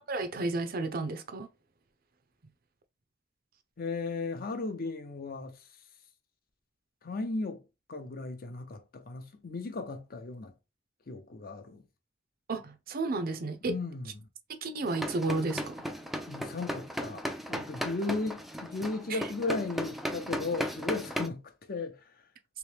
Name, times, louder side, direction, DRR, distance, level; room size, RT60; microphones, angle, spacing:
voice 1, 0.0-1.5 12.5-13.8 14.5-15.9 19.1-19.2, right 3 dB, 50° right, 0.5 m, -32 dB
voice 2, 3.8-5.7 7.0-7.6 7.9-10.5 11.1-11.8 13.7-14.3 16.3-22.2, left 3 dB, 50° left, 0.7 m, -36 dB
sound 1, 14.9-21.3, equal, ahead, 0.3 m, -36 dB
3.1 x 3.0 x 3.3 m
head